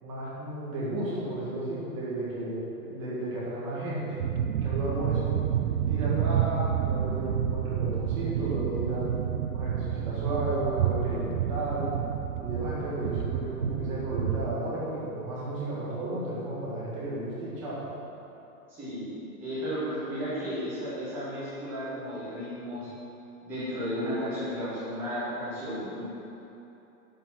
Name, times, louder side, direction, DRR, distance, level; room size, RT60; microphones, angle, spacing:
voice 1, 0.0-4.0 4.6-5.5 5.9-9.1 9.5-11.9 12.4-17.8, right 1 dB, 20° right, -8 dB, 1.7 m, -33 dB
sound 1, 4.2-14.6, right 9 dB, 75° right, 0.6 m, -29 dB
voice 2, 18.7-19.1 19.4-22.9 23.4-26.1, equal, 5° right, -12 dB, 1.0 m, -33 dB
10.5 x 4.1 x 6.0 m, 2.9 s
hypercardioid pair, 180°, 45 cm